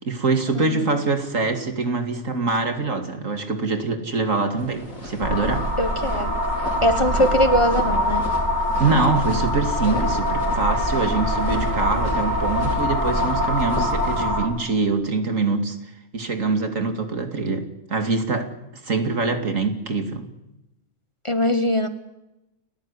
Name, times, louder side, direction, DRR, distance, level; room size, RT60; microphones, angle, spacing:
voice 1, 0.0-5.7 8.8-15.8 16.1-17.6 17.9-18.5 18.8-20.3, right 3 dB, 75° right, 7 dB, 2.7 m, -24 dB
voice 2, 0.5-1.0 5.8-6.3 6.8-8.3 21.2-21.9, equal, 25° left, 10 dB, 1.3 m, -21 dB
sound 1, 4.6-14.3, left 1 dB, 90° left, 5.2 m, -34 dB
sound 2, 5.2-14.5, left 1 dB, 35° right, 3.4 m, -23 dB
30.0 x 14.0 x 9.7 m, 0.95 s
omnidirectional pair, 1.4 m